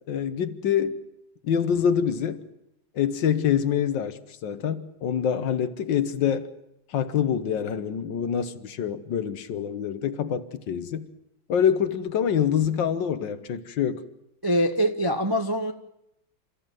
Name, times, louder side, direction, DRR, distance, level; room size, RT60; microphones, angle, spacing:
voice 1, 0.1-1.0 1.4-2.4 3.0-6.5 6.9-11.1 11.5-14.0, left 8 dB, 70° left, 1.8 m, -25 dB
voice 2, 14.4-15.7, equal, 25° right, 0.5 m, -24 dB
29.0 x 14.5 x 9.1 m
omnidirectional pair, 2.2 m